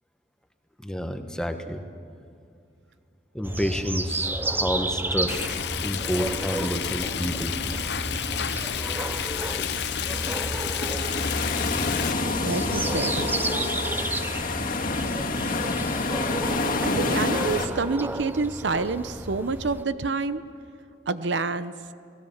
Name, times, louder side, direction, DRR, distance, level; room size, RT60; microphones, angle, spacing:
voice 1, 0.8-1.8 3.3-5.4 5.8-7.5, equal, 5° left, 5 dB, 1.3 m, -29 dB
sound 1, 3.4-19.8, right 2 dB, 10° right, 0.6 m, -32 dB
Stream, 5.3-12.1, left 8 dB, 65° left, 0.7 m, -31 dB
sound 2, 8.7-17.7, left 3 dB, 50° left, 2.2 m, -28 dB
voice 2, 12.4-13.2 16.8-20.4 21.1-21.7, right 3 dB, 80° right, 13 dB, 0.8 m, -28 dB
29.5 x 19.0 x 7.2 m, 2.3 s
head